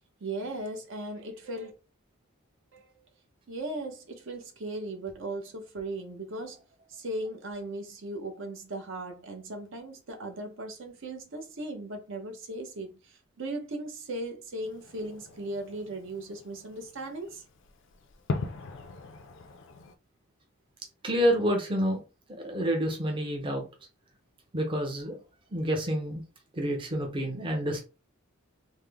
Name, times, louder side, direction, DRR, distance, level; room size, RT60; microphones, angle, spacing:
voice 1, 0.2-1.7 2.7-2.9 3.5-6.6 6.9-17.4, right 2 dB, 60° right, 0.7 m, -37 dB
Fireworks, 14.6-19.9, left 3 dB, 60° left, 0.4 m, -40 dB
voice 2, 21.0-22.0 22.4-23.6 24.5-25.2 25.5-26.2 26.5-27.8, equal, 25° right, 0.6 m, -28 dB
3.5 x 2.0 x 3.4 m
head